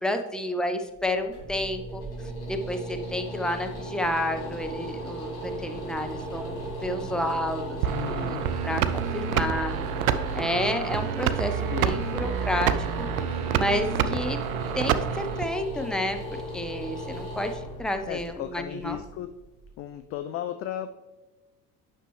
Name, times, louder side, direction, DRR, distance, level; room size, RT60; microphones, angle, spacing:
voice 1, 0.0-2.0 2.5-7.8 8.1-8.4 8.6-9.7 10.3-13.1 13.5-14.4 14.7-16.2 16.5-19.0, left 1 dB, ahead, 6 dB, 0.7 m, -30 dB
sound 1, 0.9-19.9, equal, 65° left, 2.7 m, -37 dB
sound 2, 7.8-15.4, right 9 dB, 70° right, 0.6 m, -28 dB
voice 2, 7.9-8.5 11.7-12.1 18.1-19.3 19.8-21.2, left 11 dB, 35° left, 9 dB, 0.4 m, -35 dB
9.2 x 6.1 x 3.1 m, 1.1 s
figure-of-eight pair, 55°, 46 cm